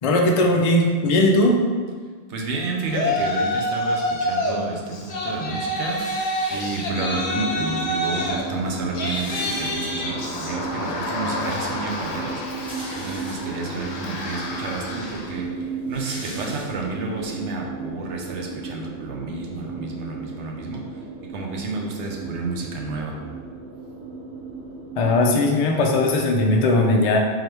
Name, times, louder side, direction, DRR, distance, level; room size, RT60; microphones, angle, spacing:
voice 1, 0.0-1.6 25.0-27.2, left 2 dB, 50° left, 0 dB, 0.4 m, -18 dB
voice 2, 2.3-21.0 21.3-23.2, right 3 dB, 85° right, 0 dB, 1.0 m, -31 dB
Yell, 2.9-4.6 4.9-15.4, left 1 dB, 70° left, 0.9 m, -28 dB
sound 1, 5.8-7.2 8.1-8.2 8.4-8.5 8.7-10.3 10.7-10.8 12.2-13.8 14.4-14.5 14.8-17.1, equal, 5° right, 0.8 m, -41 dB
sound 2, 6.9-26.5, right 4 dB, 55° right, 0.8 m, -35 dB
3.8 x 3.0 x 3.3 m, 1.5 s
omnidirectional pair, 1.1 m